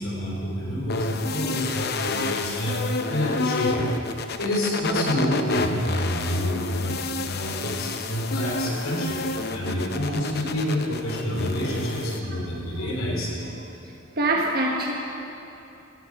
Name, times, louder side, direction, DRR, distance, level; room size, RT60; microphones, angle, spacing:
voice 1, 0.0-3.9 4.4-7.0 7.2-9.2 9.5-13.3, equal, 80° left, -2 dB, 3.4 m, -27 dB
sound 1, 0.9-12.2, left 3 dB, 50° left, 0.8 m, -30 dB
voice 2, 12.0-12.4 12.7-12.9 13.4-13.7 14.2-14.9, right 2 dB, 45° right, 0 dB, 1.2 m, -26 dB
17.0 x 17.0 x 4.8 m, 2.9 s
head